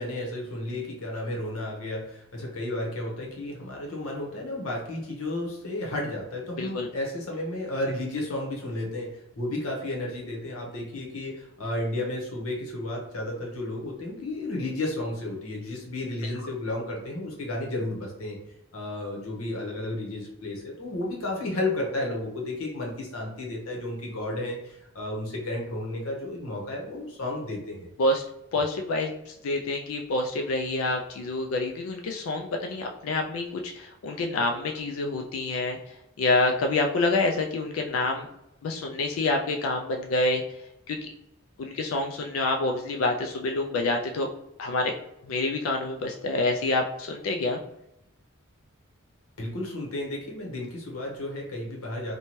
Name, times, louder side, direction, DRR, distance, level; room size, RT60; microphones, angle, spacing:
voice 1, 0.0-18.4 18.7-27.9 49.4-52.1, left 1 dB, 85° left, -1 dB, 0.9 m, -32 dB
voice 2, 6.6-6.9 16.2-16.3 28.0-28.2 28.5-38.3 38.6-40.6 40.9-41.1 41.6-44.3 44.6-44.9 45.2-47.6, left 2 dB, 70° left, 2 dB, 0.3 m, -27 dB
2.7 x 2.2 x 3.0 m, 0.85 s
head